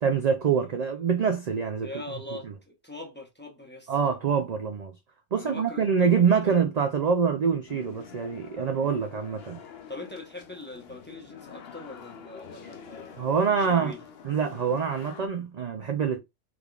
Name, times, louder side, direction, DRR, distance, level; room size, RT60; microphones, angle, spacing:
voice 1, 0.0-1.9 3.9-4.9 5.3-9.6 13.2-13.9 14.2-16.2, right 6 dB, 55° right, 0.5 m, -25 dB
voice 2, 1.8-4.0 5.4-6.2 6.4-6.6 8.7-9.0 9.9-13.3 13.6-14.0, left 2 dB, 10° left, 0.8 m, -42 dB
sound 1, 7.7-15.3, left 7 dB, 65° left, 0.8 m, -47 dB
3.6 x 3.3 x 2.3 m
omnidirectional pair, 1.2 m